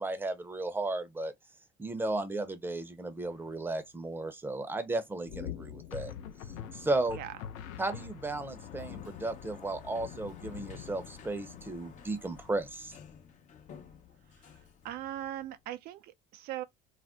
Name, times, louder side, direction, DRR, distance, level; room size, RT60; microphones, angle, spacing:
voice 1, 0.0-1.3 1.8-6.1 6.7-7.2 7.8-13.0, right 2 dB, 10° right, 0.7 m, -34 dB
sound 1, 3.2-3.7 5.9-8.6, left 7 dB, 90° left, 0.5 m, -45 dB
sound 2, 5.3-12.0, left 10 dB, 65° left, 1.1 m, -46 dB
Sliding door, 8.0-15.7, left 7 dB, 45° left, 0.8 m, -53 dB
voice 2, 14.3-16.6, right 12 dB, 65° right, 0.5 m, -40 dB
2.5 x 2.1 x 3.5 m
supercardioid pair, 85°, 17 cm